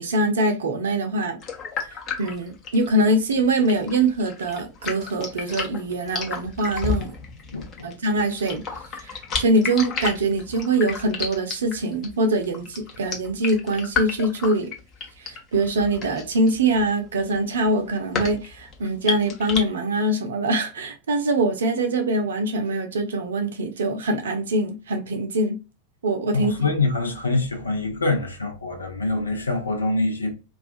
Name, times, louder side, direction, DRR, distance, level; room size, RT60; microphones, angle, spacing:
voice 1, 0.0-1.4 1.9-7.1 7.8-8.6 8.9-14.7 15.2-25.6 26.0-26.7, right 2 dB, 65° right, 0.5 m, -23 dB
sound 1, 1.4-19.6, left 5 dB, 30° left, 0.8 m, -32 dB
voice 2, 7.5-7.9 26.3-30.3, left 2 dB, 80° left, 0.7 m, -25 dB
2.4 x 2.3 x 2.5 m
figure-of-eight pair, 90°, 0 cm